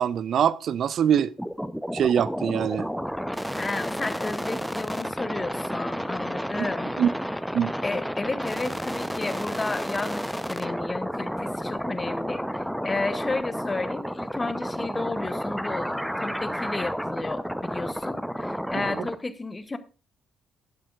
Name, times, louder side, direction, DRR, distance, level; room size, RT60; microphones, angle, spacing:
voice 1, 0.0-1.3 1.9-2.9 6.6-6.7 7.0-7.1 7.5-7.7 18.7-19.0, right 9 dB, 50° right, 0.4 m, -23 dB
sound 1, 1.4-19.2, equal, ahead, 0.8 m, -31 dB
voice 2, 3.6-6.9 7.8-19.8, left 3 dB, 25° left, 1.1 m, -32 dB
13.0 x 11.5 x 2.5 m
figure-of-eight pair, 45°, 0 cm